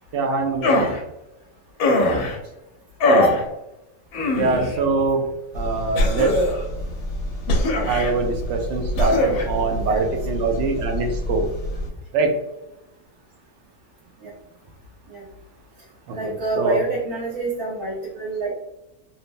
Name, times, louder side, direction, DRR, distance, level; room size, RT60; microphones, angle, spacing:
voice 1, 0.1-0.9 4.3-5.3 5.5-6.4 7.8-11.5 12.1-12.4 16.1-16.8, right 3 dB, 65° right, 3 dB, 0.8 m, -23 dB
sound 1, 0.6-1.0 1.8-2.4 3.0-3.4 4.1-4.8 6.0-6.7 7.5-8.1 9.0-9.5, left 1 dB, 85° left, 1.1 m, -20 dB
voice 2, 3.1-3.4 9.3-10.1 14.2-14.3 15.1-15.3 16.1-18.5, right 2 dB, 90° right, -6 dB, 1.2 m, -27 dB
sound 2, 5.5-11.9, equal, 60° left, 0.7 m, -30 dB
3.1 x 2.0 x 2.5 m, 0.92 s
omnidirectional pair, 1.5 m